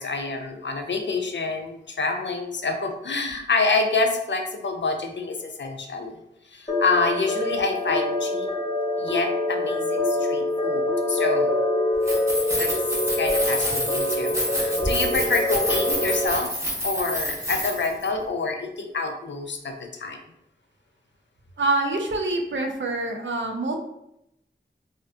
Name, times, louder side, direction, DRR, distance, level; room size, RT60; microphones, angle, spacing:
voice 1, 0.0-6.2 6.5-8.5 9.0-11.5 12.6-12.7 13.2-16.5 16.8-20.2, left 3 dB, 70° left, 4 dB, 0.4 m, -27 dB
sound 1, 6.7-16.3, left 1 dB, 25° left, 0.8 m, -25 dB
Keys jangling, 11.9-18.1, equal, 15° right, 0.7 m, -28 dB
voice 2, 21.6-23.8, right 2 dB, 80° right, 2 dB, 0.4 m, -25 dB
2.5 x 2.5 x 2.2 m, 0.81 s
wide cardioid pair, 45°, 19 cm